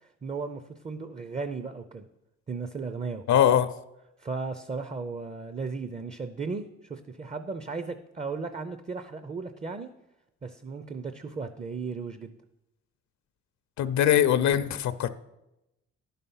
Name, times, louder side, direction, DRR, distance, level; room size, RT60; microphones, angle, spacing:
voice 1, 0.0-2.1 2.5-3.2 4.2-9.9 10.4-12.4, right 4 dB, 25° right, 0.5 m, -35 dB
voice 2, 3.3-3.7 13.8-15.1, left 10 dB, 70° left, 0.6 m, -22 dB
11.0 x 5.7 x 5.5 m
cardioid pair, 90°, 30 cm